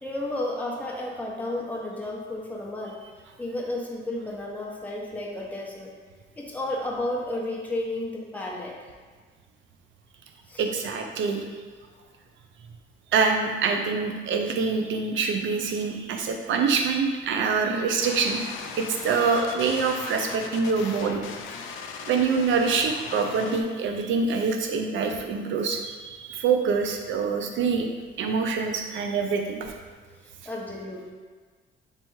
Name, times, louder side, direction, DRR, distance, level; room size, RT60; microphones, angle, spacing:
voice 1, 0.0-3.0 3.4-5.9 6.4-8.7 10.5-10.6 30.4-31.1, left 1 dB, 10° left, -3 dB, 0.8 m, -32 dB
voice 2, 10.6-11.4 13.1-18.4 18.8-21.2 22.0-27.9 28.2-29.7, right 5 dB, 75° right, 3 dB, 0.6 m, -25 dB
sound 1, 18.0-23.6, left 5 dB, 85° left, 0.4 m, -38 dB
3.4 x 2.9 x 4.5 m, 1.5 s
cardioid pair, 90°, 20 cm